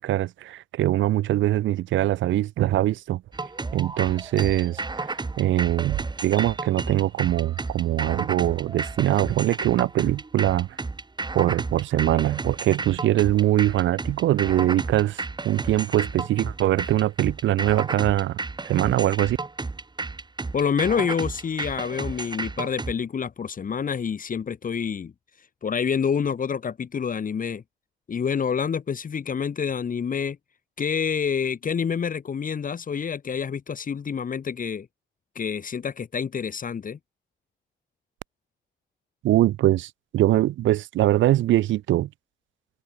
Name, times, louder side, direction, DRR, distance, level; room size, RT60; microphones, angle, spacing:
voice 1, 0.0-3.2 3.7-10.7 11.3-18.4 18.6-19.4 39.2-42.1, right 14 dB, 75° right, 0.7 m, -22 dB
sound 1, 3.3-22.9, right 3 dB, 20° right, 4.6 m, -32 dB
voice 2, 20.5-25.1 25.4-27.6 28.1-30.4 30.8-34.9 35.4-37.0, left 6 dB, 45° left, 2.3 m, -27 dB
cardioid pair, 90°, 20 cm